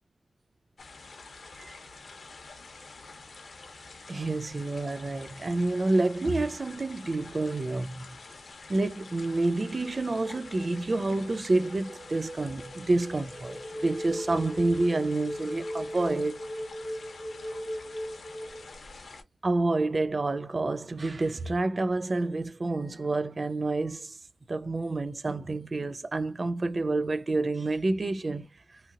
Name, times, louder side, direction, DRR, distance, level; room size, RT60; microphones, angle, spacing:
sound 1, 0.8-19.2, left 3 dB, 70° left, 0.7 m, -48 dB
voice 1, 4.1-8.2 8.7-16.4 19.4-24.2 24.5-28.8, right 2 dB, 45° right, 0.3 m, -28 dB
sound 2, 9.1-18.8, equal, 15° left, 0.6 m, -39 dB
2.8 x 2.7 x 2.4 m
wide cardioid pair, 80°, 0 cm